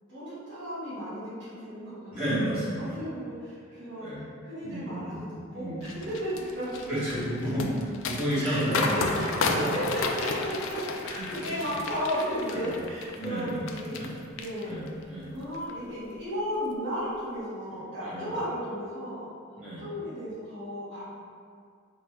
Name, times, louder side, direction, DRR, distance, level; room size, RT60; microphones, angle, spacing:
voice 1, 0.1-2.4 2.8-7.0 8.4-14.0 14.3-19.3 19.7-21.0, equal, 60° right, -11 dB, 1.4 m, -34 dB
voice 2, 2.1-3.0 4.0-4.2 4.6-5.2 5.5-6.0 6.9-9.2 9.4-9.5 11.1-11.5 12.4-12.6 13.2-13.6 14.0-14.1 14.7-15.3 18.0-18.3 19.6-19.8, equal, 5° right, -13 dB, 1.4 m, -31 dB
sound 1, 5.8-14.1 14.4-15.0 15.4-15.7, left 4 dB, 65° left, 0.3 m, -33 dB
3.9 x 2.1 x 3.3 m, 2.2 s
head